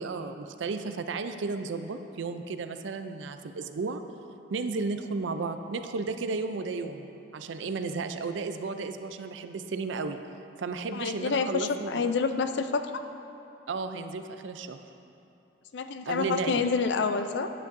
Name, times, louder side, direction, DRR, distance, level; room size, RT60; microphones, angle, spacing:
voice 1, 0.0-4.0 4.5-10.2 10.6-11.9 13.7-14.8 16.1-16.6, right 4 dB, 80° right, 8 dB, 0.4 m, -33 dB
voice 2, 10.9-12.9 15.7-17.5, left 4 dB, 70° left, 8 dB, 0.4 m, -28 dB
11.0 x 9.1 x 2.6 m, 2.8 s
head